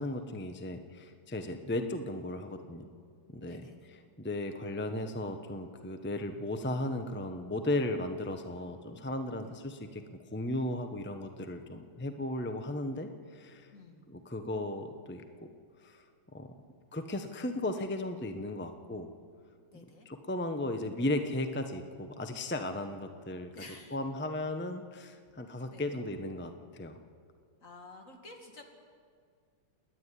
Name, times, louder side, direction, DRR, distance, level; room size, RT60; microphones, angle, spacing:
voice 1, 0.0-2.9 3.3-3.6 3.9-13.7 14.1-15.5 15.8-16.0 16.3-16.5 16.9-19.1 19.7-23.5 23.9-27.0, left 1 dB, 15° left, 7 dB, 0.4 m, -36 dB
voice 2, 3.5-3.9 9.4-9.5 13.7-14.0 19.7-20.1 23.5-24.0 25.7-26.0 27.6-28.6, left 2 dB, 40° left, 3 dB, 2.5 m, -51 dB
28.0 x 10.5 x 9.9 m, 2.1 s
omnidirectional pair, 2.2 m